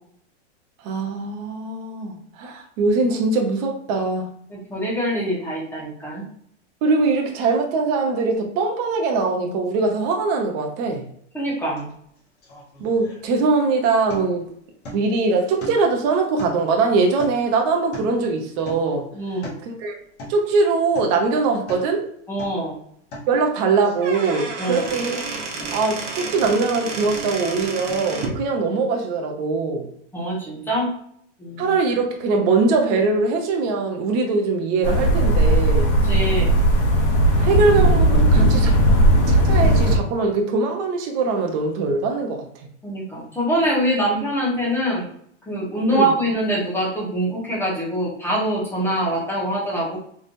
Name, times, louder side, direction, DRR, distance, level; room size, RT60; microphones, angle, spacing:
voice 1, 0.8-4.3 6.8-11.0 12.8-14.5 14.9-19.1 19.6-19.9 20.3-22.1 23.3-25.2 25.7-29.9 31.6-35.9 37.4-38.8 39.3-42.4 45.9-46.1, right 4 dB, 35° right, 2 dB, 0.7 m, -22 dB
voice 2, 4.5-6.2 11.3-11.9 19.1-19.5 22.3-22.7 24.6-24.8 30.1-30.9 31.4-31.7 36.1-36.5 42.8-45.1 45.5-50.0, right 1 dB, 5° left, -6 dB, 1.3 m, -24 dB
sound 1, 11.8-11.9 12.2-13.6 14.1-14.5 14.8-15.2 15.6-16.0 16.4-18.3 18.6-19.0 19.3-19.7 20.2-20.5 20.9-21.2 21.5-21.9 22.3-22.7 23.1-23.3 23.8-24.5 24.8-25.2 25.6-26.0 26.4-26.7 27.1-27.5 27.9-28.0, equal, 30° left, 1.4 m, -39 dB
Squeak / Wood, 24.0-28.4, right 3 dB, 75° right, 1.2 m, -31 dB
sound 2, 34.8-40.0, right 1 dB, 75° left, 1.3 m, -16 dB
3.6 x 3.3 x 2.6 m, 0.67 s
supercardioid pair, 155°, 36 cm